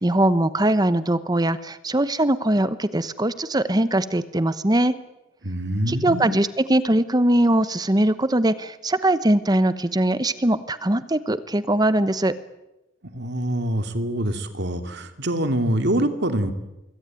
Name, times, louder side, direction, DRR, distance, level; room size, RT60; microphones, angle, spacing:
voice 1, 0.0-4.9 5.9-12.3, right 1 dB, 20° right, 14 dB, 1.0 m, -21 dB
voice 2, 5.4-6.3 13.1-16.5, right 1 dB, 55° right, 8 dB, 2.6 m, -25 dB
25.5 x 22.5 x 9.1 m, 0.97 s
head